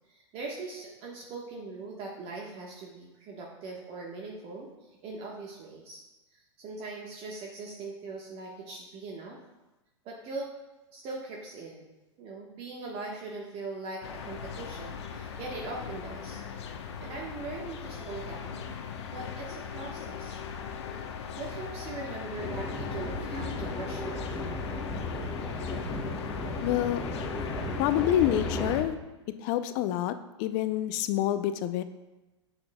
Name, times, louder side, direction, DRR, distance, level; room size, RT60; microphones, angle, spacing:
voice 1, 0.1-6.0 6.3-9.4 10.0-10.5 10.9-11.9 12.2-16.4 17.0-18.8 19.1-20.4 21.4-24.4, right 3 dB, 40° right, -2 dB, 1.3 m, -41 dB
sound 1, 14.0-28.8, left 6 dB, 65° left, 0.9 m, -39 dB
sound 2, 22.4-28.9, left 1 dB, 5° left, 1.1 m, -35 dB
voice 2, 26.6-27.0 27.8-29.0 29.4-31.8, left 12 dB, 45° left, 11 dB, 0.5 m, -27 dB
10.0 x 7.7 x 2.2 m, 1.0 s
hypercardioid pair, 105°, 15 cm